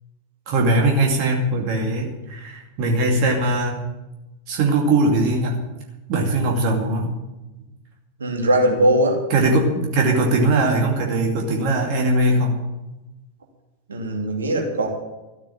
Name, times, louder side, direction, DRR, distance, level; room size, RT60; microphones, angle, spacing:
voice 1, 0.5-3.8 4.5-5.6 6.1-7.1 9.3-12.6, right 2 dB, 45° right, 1 dB, 2.4 m, -20 dB
voice 2, 8.2-9.2 13.9-14.9, right 1 dB, 70° right, 1 dB, 2.8 m, -20 dB
13.5 x 8.7 x 9.1 m, 1.0 s
figure-of-eight pair, 90°, 0 cm